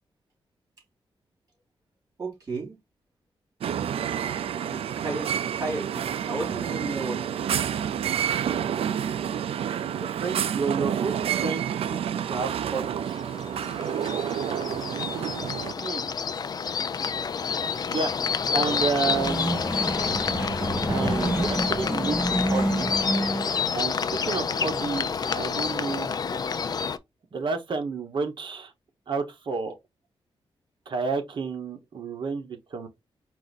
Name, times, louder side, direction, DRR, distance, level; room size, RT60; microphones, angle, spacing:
voice 1, 2.2-2.8 4.7-7.3 15.8-16.1 18.5-18.8 23.4-23.5 26.3-26.4, right 2 dB, 40° right, 3.3 m, -34 dB
sound 1, 3.6-15.7, right 9 dB, 80° right, 0.4 m, -29 dB
voice 2, 9.9-11.6 11.9-13.1 17.9-18.1 18.5-19.6 20.9-22.9 23.7-26.1 27.3-28.7 29.1-29.7 30.9-32.9, right 4 dB, 55° right, 1.0 m, -30 dB
sound 2, 13.1-27.0, left 6 dB, 40° left, 0.4 m, -29 dB
sound 3, 18.7-23.9, right 1 dB, 10° right, 1.0 m, -28 dB
4.7 x 2.6 x 4.0 m
wide cardioid pair, 145°, 10 cm